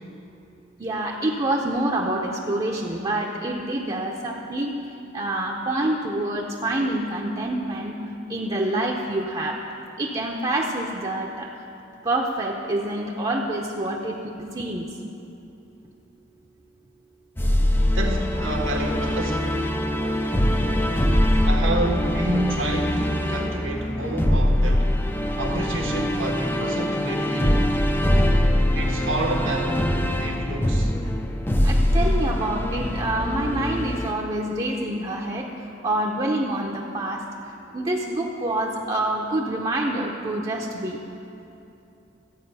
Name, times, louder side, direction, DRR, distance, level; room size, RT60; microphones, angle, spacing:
voice 1, 0.8-4.7 5.1-8.0 8.3-9.6 10.0-11.5 12.0-14.9 31.6-35.5 35.8-37.2 37.7-41.0, right 1 dB, 25° right, -1 dB, 0.7 m, -26 dB
sound 1, 17.4-34.1, left 1 dB, 10° left, 0.5 m, -23 dB
voice 2, 17.9-19.5 21.4-24.9 25.4-27.6 28.7-29.8 30.2-30.9, right 1 dB, 80° right, 1 dB, 1.5 m, -29 dB
14.0 x 8.4 x 5.5 m, 2.9 s
head